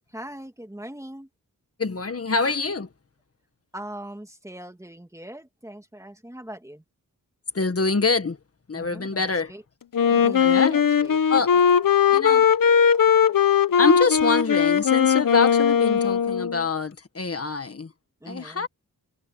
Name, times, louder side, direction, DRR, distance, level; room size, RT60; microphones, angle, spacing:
voice 1, 0.1-1.3 3.7-6.8 8.7-9.6 10.1-11.2 18.2-18.7, right 1 dB, 10° right, 2.4 m, -40 dB
voice 2, 1.8-2.9 7.5-8.4 8.7-9.5 10.4-11.0 11.3-11.6 12.1-12.5 13.8-17.9 18.2-18.7, left 4 dB, 40° left, 1.7 m, -25 dB
Wind instrument woodwind instrument, 9.9-16.6, left 7 dB, 70° left, 1.0 m, -19 dB
wide cardioid pair, 115°, 35 cm